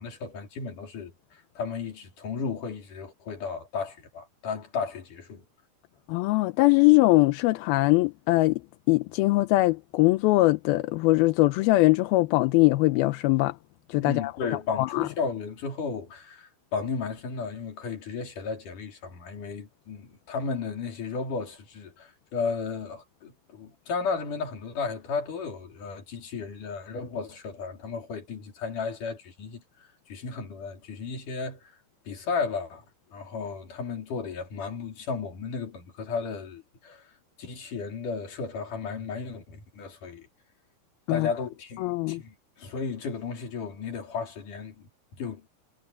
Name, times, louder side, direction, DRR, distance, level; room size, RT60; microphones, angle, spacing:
voice 1, 0.0-5.4 14.0-31.7 32.1-32.9 33.1-37.1 37.4-40.3 41.1-44.9 45.2-45.5, left 5 dB, 55° left, 5.2 m, -34 dB
voice 2, 6.1-8.6 8.9-13.5 13.9-14.3 14.8-15.1 41.1-41.3 41.8-42.2, left 20 dB, 80° left, 2.4 m, -21 dB
omnidirectional pair, 4.6 m